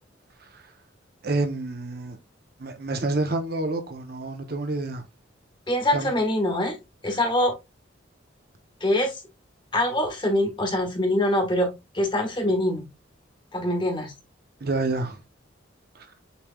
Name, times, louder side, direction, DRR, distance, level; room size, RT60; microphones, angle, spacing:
voice 1, 1.2-2.2 2.6-5.0 5.9-6.2 7.1-7.2 14.6-15.2 15.9-16.1, right 2 dB, 50° right, 0.8 m, -28 dB
voice 2, 5.7-6.8 7.0-7.5 8.8-9.1 9.7-12.8 13.5-14.1, left 1 dB, 25° left, 1.3 m, -24 dB
6.9 x 3.2 x 2.3 m
head